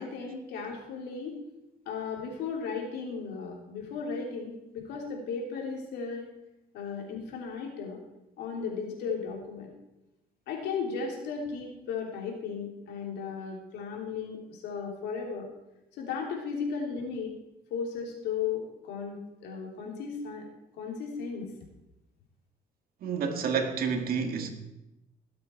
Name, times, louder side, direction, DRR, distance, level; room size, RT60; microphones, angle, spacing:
voice 1, 0.0-1.3 1.8-6.3 6.7-8.0 8.4-9.7 10.5-15.5 15.9-17.3 17.7-20.5 20.8-21.5, left 5 dB, 80° left, 3.2 m, -35 dB
voice 2, 23.0-24.5, right 6 dB, 60° right, 1.8 m, -29 dB
18.0 x 7.8 x 4.5 m
cardioid pair, 110°, 17 cm